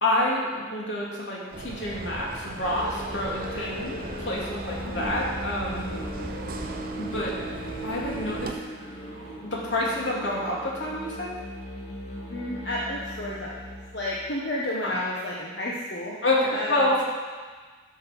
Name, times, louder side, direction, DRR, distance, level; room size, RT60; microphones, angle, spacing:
voice 1, 0.0-6.0 7.0-7.3 7.8-8.6 9.4-11.4 14.8-14.9 16.2-17.0, left 1 dB, 85° left, -4 dB, 2.8 m, -28 dB
sound 1, 1.5-8.5, right 2 dB, 50° right, 0.7 m, -38 dB
Musical instrument, 2.7-14.3, equal, 35° left, 2.6 m, -38 dB
voice 2, 4.8-5.2 12.3-13.6 13.9-16.2 16.5-17.0, left 1 dB, 70° left, -5 dB, 1.3 m, -31 dB
12.5 x 6.3 x 6.0 m, 1.5 s
head